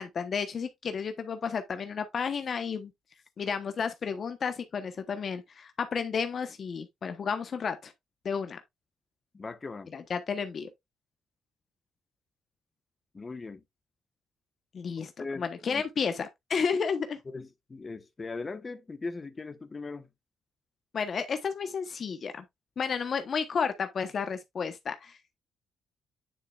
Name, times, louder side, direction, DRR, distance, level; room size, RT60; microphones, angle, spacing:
voice 1, 0.0-2.9 3.4-7.9 8.2-8.6 9.9-10.7 14.7-15.1 15.4-17.2 20.9-22.4 22.8-25.2, left 6 dB, 50° left, 1.0 m, -32 dB
voice 2, 9.3-9.9 13.1-13.6 15.0-15.8 17.3-20.1, left 3 dB, 30° left, 1.2 m, -39 dB
9.9 x 5.8 x 2.4 m
cardioid pair, 90°, 0 cm